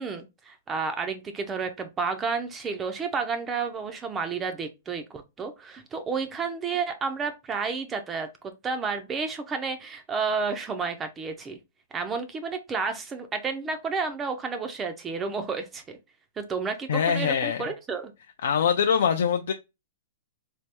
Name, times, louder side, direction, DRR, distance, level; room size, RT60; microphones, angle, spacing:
voice 1, 0.0-8.3 8.6-11.6 11.9-16.0 16.4-18.1, right 5 dB, 15° right, 0.3 m, -31 dB
voice 2, 16.9-17.6 18.4-19.5, left 7 dB, 75° left, 0.3 m, -23 dB
3.3 x 2.2 x 2.8 m
hypercardioid pair, 160°, 0 cm